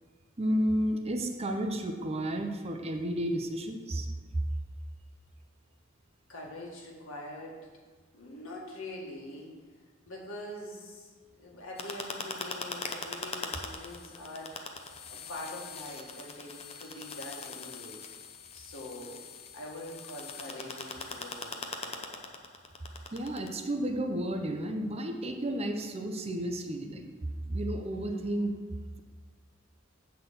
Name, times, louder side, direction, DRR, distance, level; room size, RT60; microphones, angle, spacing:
voice 1, 0.4-4.1 4.3-4.4 23.1-27.1 27.5-28.5, right 1 dB, 30° right, 5 dB, 0.7 m, -32 dB
voice 2, 6.3-7.6 8.1-9.5 10.1-14.5 15.1-18.0 18.5-19.2 19.5-22.3, left 1 dB, 80° left, -2 dB, 1.9 m, -44 dB
sound 1, 11.8-23.5, left 4 dB, 30° left, 0.7 m, -41 dB
8.0 x 4.0 x 6.9 m, 1.4 s
head